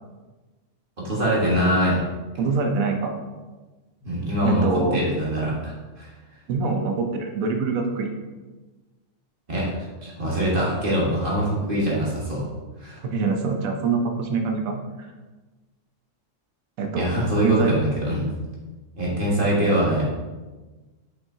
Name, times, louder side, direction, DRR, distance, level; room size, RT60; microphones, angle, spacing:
voice 1, 1.0-2.0 4.0-4.7 4.9-6.1 9.5-9.7 10.0-12.4 12.8-13.0 16.9-18.3 19.0-20.1, right 1 dB, 40° right, -5 dB, 1.7 m, -23 dB
voice 2, 2.4-3.1 4.4-5.0 6.5-8.1 13.0-14.8 16.8-17.1 17.4-17.8, right 4 dB, 90° right, 3 dB, 1.2 m, -24 dB
6.0 x 5.9 x 2.8 m, 1.2 s
omnidirectional pair, 1.4 m